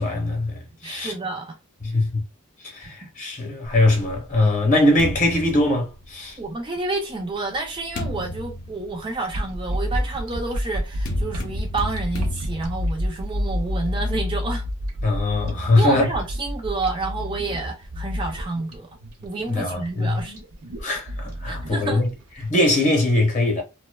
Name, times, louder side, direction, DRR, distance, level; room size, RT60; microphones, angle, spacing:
voice 1, 0.0-1.1 1.9-2.2 2.7-6.4 15.0-16.1 19.5-20.2 20.8-22.1 22.4-23.6, left 2 dB, 35° left, 0.8 m, -21 dB
voice 2, 0.8-1.6 6.4-14.7 15.8-18.9 19.2-20.3 21.5-22.0, right 3 dB, 20° right, 0.3 m, -29 dB
sound 1, 3.7-6.5 7.2-14.2, equal, 70° left, 0.6 m, -35 dB
sound 2, 9.3-22.4, left 1 dB, 70° right, 0.6 m, -29 dB
2.6 x 2.1 x 2.2 m
head